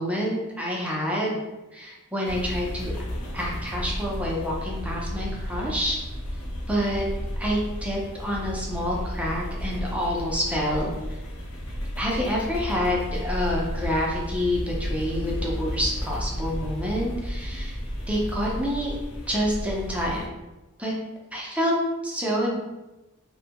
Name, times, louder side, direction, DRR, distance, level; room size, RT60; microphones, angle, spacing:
voice 1, 0.0-1.4 1.7-2.9 3.3-6.0 6.7-7.1 7.4-11.2 12.0-17.8 18.1-18.9 19.3-20.3 20.8-20.9 21.3-21.7 22.0-22.6, equal, 5° right, -3 dB, 0.5 m, -27 dB
sound 1, 2.2-20.3, equal, 85° left, 0.6 m, -33 dB
2.6 x 2.2 x 2.8 m, 1.1 s
head